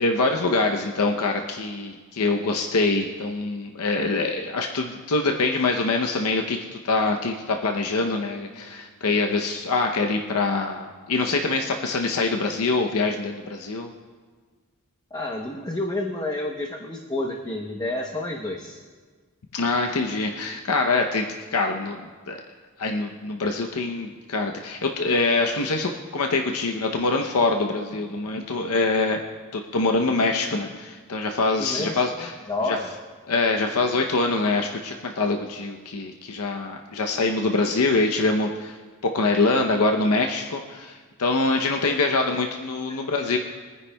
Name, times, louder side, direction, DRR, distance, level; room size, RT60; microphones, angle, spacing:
voice 1, 0.0-13.9 19.5-22.0 22.3-22.4 22.8-29.2 29.5-32.8 33.3-38.8 39.0-43.4, left 3 dB, 75° left, 3 dB, 0.7 m, -24 dB
voice 2, 15.1-18.8 31.6-32.9 37.1-37.2, left 2 dB, 20° left, 1 dB, 0.8 m, -30 dB
23.0 x 9.7 x 2.2 m, 1.5 s
head